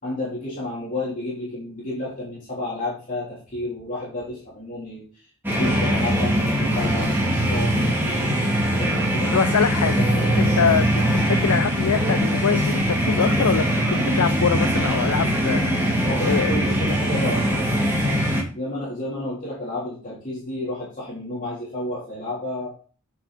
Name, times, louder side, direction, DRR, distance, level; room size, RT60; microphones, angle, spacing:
voice 1, 0.0-9.3 10.0-10.3 16.0-18.2 18.5-22.7, left 1 dB, 35° left, -7 dB, 3.3 m, -32 dB
sound 1, 5.4-18.4, equal, 10° right, 2.5 m, -21 dB
voice 2, 9.3-10.0 10.4-10.9 11.2-16.0 16.2-16.6, left 6 dB, 85° left, 11 dB, 0.5 m, -24 dB
8.2 x 6.2 x 4.1 m, 0.40 s
head